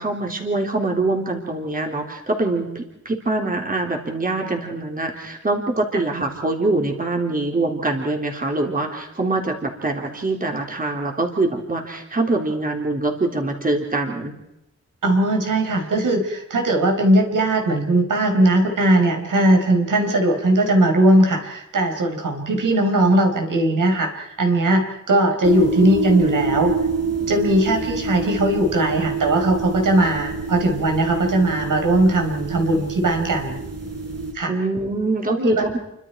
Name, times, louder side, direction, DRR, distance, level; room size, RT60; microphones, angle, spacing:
voice 1, 0.0-14.3 34.5-35.8, right 2 dB, 25° right, 2 dB, 3.7 m, -24 dB
voice 2, 15.0-26.8 27.2-33.6 34.3-34.5 35.4-35.6, right 1 dB, 90° right, 3 dB, 4.8 m, -19 dB
sound 1, 25.4-34.3, right 4 dB, 50° right, 4.8 m, -27 dB
29.5 x 24.5 x 4.7 m, 0.84 s
wide cardioid pair, 165°, 31 cm